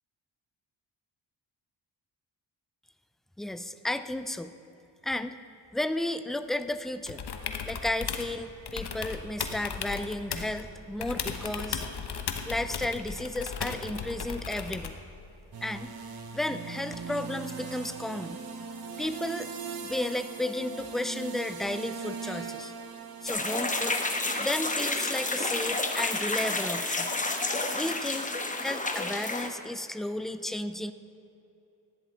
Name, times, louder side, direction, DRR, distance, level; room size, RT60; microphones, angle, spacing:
voice 1, 3.4-4.5 5.0-5.4 5.7-7.2 7.6-11.8 12.5-15.0 15.6-15.9 16.3-18.4 19.0-19.5 19.8-22.7 23.2-24.0 24.4-27.1 27.7-28.3 28.6-30.9, left 1 dB, ahead, 11 dB, 0.3 m, -33 dB
sound 1, 7.1-8.3 8.7-10.6 11.0-15.0 16.9-17.0, left 6 dB, 55° left, 1.1 m, -36 dB
sound 2, 15.5-28.1, right 5 dB, 50° right, 1.2 m, -41 dB
sound 3, 23.3-29.5, left 2 dB, 15° left, 1.1 m, -30 dB
14.0 x 10.5 x 3.7 m, 2.9 s
cardioid pair, 65°, 47 cm